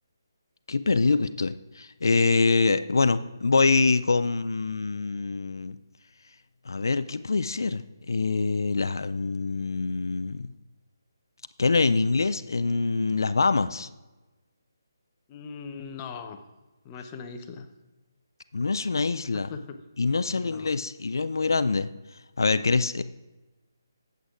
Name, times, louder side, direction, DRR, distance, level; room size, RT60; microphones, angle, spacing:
voice 1, 0.7-5.8 6.7-10.5 11.6-13.9 18.5-19.5 20.0-21.9 22.4-23.0, left 4 dB, 70° left, 13 dB, 0.4 m, -25 dB
voice 2, 15.3-16.4 16.8-17.7 19.5-19.8 20.4-20.7, left 5 dB, 20° left, 7 dB, 0.7 m, -39 dB
12.5 x 7.9 x 2.4 m, 1.1 s
figure-of-eight pair, 150°, 2 cm